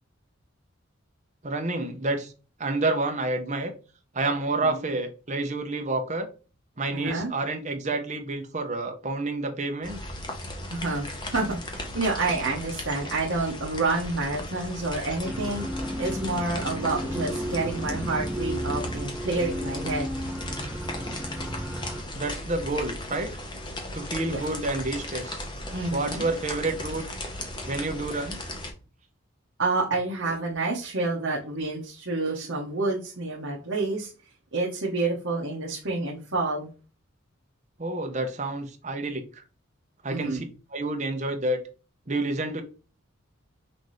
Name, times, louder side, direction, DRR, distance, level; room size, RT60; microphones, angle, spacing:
voice 1, 1.4-2.3 2.6-3.7 4.1-6.3 6.8-10.0 22.1-23.3 23.9-25.4 25.9-27.0 27.7-28.4 37.8-39.2 40.0-40.4 40.7-41.6 42.1-42.6, right 2 dB, 35° right, 0.9 m, -29 dB
voice 2, 6.9-7.3 10.7-15.6 16.0-20.1 24.2-24.4 25.7-26.3 29.6-34.1 34.5-36.7 40.1-40.5, right 3 dB, 65° right, 1.1 m, -28 dB
sound 1, 9.8-28.7, left 1 dB, 20° left, 0.9 m, -37 dB
sound 2, 15.2-22.0, right 1 dB, 5° right, 0.4 m, -33 dB
5.8 x 2.8 x 3.2 m
head